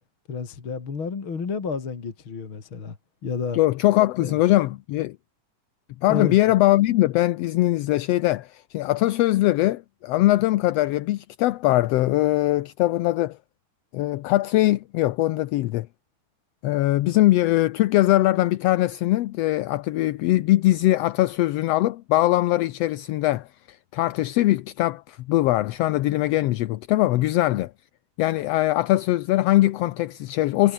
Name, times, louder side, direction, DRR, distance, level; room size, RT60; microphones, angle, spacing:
voice 1, 0.3-3.0 3.2-3.6 4.2-4.4 6.1-6.4, left 5 dB, 45° left, 3.5 m, -30 dB
voice 2, 3.5-5.2 6.0-13.4 13.9-15.9 16.6-27.7 28.2-30.7, left 16 dB, 75° left, 1.6 m, -21 dB
omnidirectional pair, 3.5 m